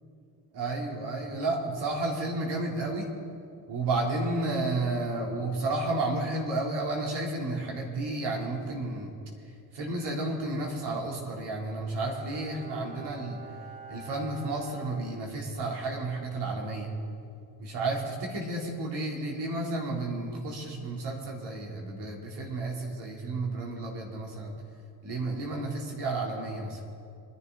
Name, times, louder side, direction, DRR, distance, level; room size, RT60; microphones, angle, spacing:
voice 1, 0.5-3.1 3.7-9.1 9.4-13.5 13.9-16.9 17.6-24.6 25.0-26.8, right 2 dB, 60° right, -1 dB, 3.6 m, -32 dB
Bowed string instrument, 12.1-15.8 16.1-16.2, right 3 dB, 85° right, 2.7 m, -47 dB
24.5 x 11.0 x 4.1 m, 2.5 s
supercardioid pair, 80°, 45 cm